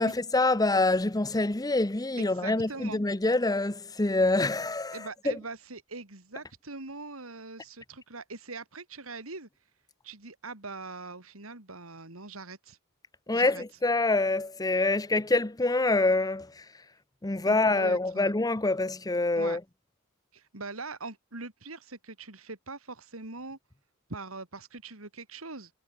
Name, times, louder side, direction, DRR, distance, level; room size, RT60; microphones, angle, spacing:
voice 1, 0.0-5.4 13.3-16.7 17.2-19.6, left 2 dB, 20° left, 0.9 m, -26 dB
voice 2, 2.2-3.0 4.9-9.5 10.0-12.8 13.3-13.6 17.5-18.3 19.4-19.6 20.3-23.6 24.1-25.7, right 3 dB, 80° right, 3.7 m, -42 dB
head